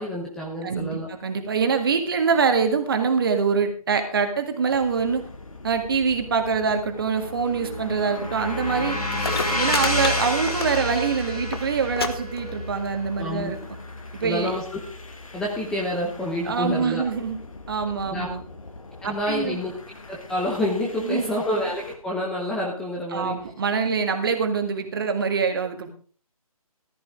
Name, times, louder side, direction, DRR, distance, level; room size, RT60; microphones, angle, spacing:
voice 1, 0.0-1.1 13.2-13.6 14.2-14.8 15.3-17.0 18.1-18.3 19.0-19.7 20.1-23.4, left 1 dB, 5° left, -3 dB, 1.0 m, -28 dB
voice 2, 0.6-5.3 5.6-9.0 9.6-13.6 14.1-14.5 16.4-17.4 17.7-18.4 19.0-19.6 20.9-21.3 23.1-25.9, right 5 dB, 40° right, 6 dB, 1.9 m, -24 dB
sound 1, 4.7-22.0, left 3 dB, 65° left, 2.1 m, -44 dB
sound 2, 6.8-15.1, left 1 dB, 90° left, 4.0 m, -30 dB
sound 3, 8.9-9.0 9.1-11.1 11.3-11.6 12.0-12.1 12.4-12.9 13.7-13.8, left 5 dB, 40° left, 1.2 m, -30 dB
14.5 x 11.0 x 3.7 m, 0.43 s
figure-of-eight pair, 150°, 19 cm